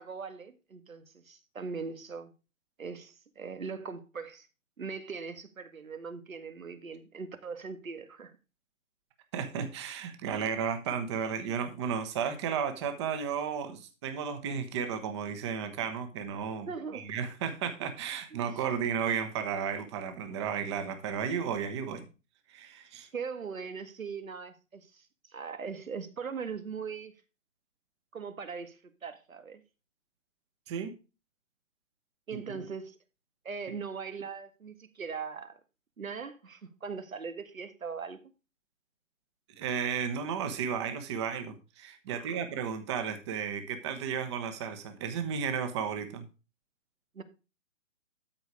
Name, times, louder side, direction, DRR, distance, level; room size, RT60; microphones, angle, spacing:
voice 1, 0.0-2.3 2.8-4.5 4.8-8.4 16.7-17.1 18.3-18.4 23.1-25.1 25.3-27.1 28.1-29.6 32.3-33.0 33.5-35.6 36.0-38.2 42.1-42.4 47.2-47.3, right 5 dB, 90° right, 1.9 m, -40 dB
voice 2, 9.3-22.1 22.5-23.1 30.7-30.9 39.6-46.3, right 7 dB, 20° right, 1.1 m, -33 dB
13.0 x 4.6 x 4.8 m
hypercardioid pair, 160°, 40 cm